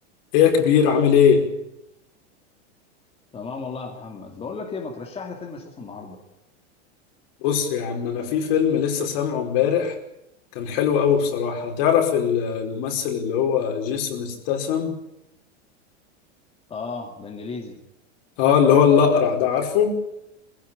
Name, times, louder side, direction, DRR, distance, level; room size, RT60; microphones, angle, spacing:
voice 1, 0.3-1.4 7.4-9.9 10.5-14.9 18.4-19.9, left 7 dB, 55° left, 3 dB, 5.0 m, -20 dB
voice 2, 3.3-6.2 16.7-17.8, left 4 dB, 15° left, 1 dB, 2.5 m, -34 dB
21.0 x 16.0 x 8.8 m, 0.87 s
supercardioid pair, 145°, 35 cm